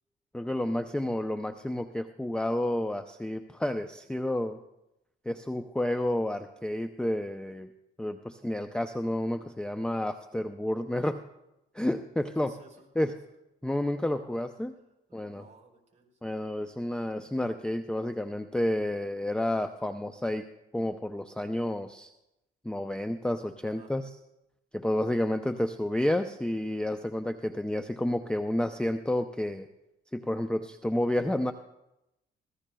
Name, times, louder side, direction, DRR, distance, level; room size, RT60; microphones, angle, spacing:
voice 1, 0.3-4.6 5.3-7.7 8.0-11.2 11.7-12.5 13.0-13.1 13.6-14.7 15.1-15.4 16.2-20.5 20.7-22.1 22.6-24.1 24.7-29.7 30.1-31.5, left 1 dB, 5° left, 7 dB, 0.5 m, -30 dB
voice 2, 12.4-12.9 14.7-14.8 15.1-16.2 23.6-23.9, right 3 dB, 35° right, 3 dB, 3.9 m, -57 dB
24.0 x 16.5 x 2.3 m, 0.89 s
cardioid pair, 90°, 20 cm